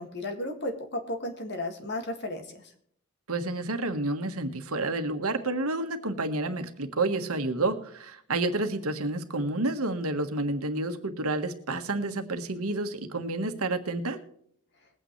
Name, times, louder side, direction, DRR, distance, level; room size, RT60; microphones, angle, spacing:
voice 1, 0.0-2.4, left 1 dB, 50° left, 5 dB, 2.1 m, -34 dB
voice 2, 3.3-14.2, right 2 dB, 85° right, 7 dB, 1.5 m, -30 dB
21.0 x 9.0 x 3.2 m, 0.65 s
head